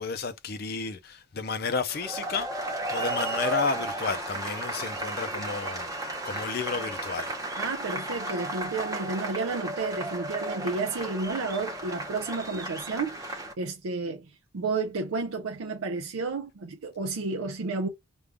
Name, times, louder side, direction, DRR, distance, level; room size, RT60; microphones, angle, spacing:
voice 1, 0.0-5.9 6.2-7.3, left 4 dB, 45° left, 0.5 m, -32 dB
sound 1, 1.9-13.5, right 2 dB, 15° right, 0.7 m, -34 dB
voice 2, 7.6-17.9, right 3 dB, 85° right, 0.5 m, -31 dB
5.1 x 2.3 x 3.4 m
head